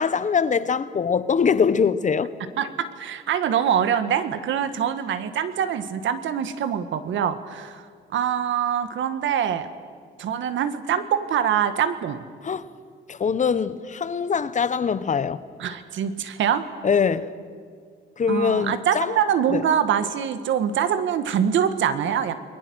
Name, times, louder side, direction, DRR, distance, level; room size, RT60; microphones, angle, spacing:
voice 1, 0.0-2.3 12.4-12.7 13.1-15.4 16.8-17.3 18.2-19.2 19.5-19.6, left 6 dB, 40° left, 1.0 m, -23 dB
voice 2, 2.6-7.9 8.1-9.7 10.2-12.2 15.6-16.6 18.3-22.4, right 8 dB, 75° right, 1.6 m, -24 dB
29.5 x 21.5 x 6.3 m
cardioid pair, 90°, 20 cm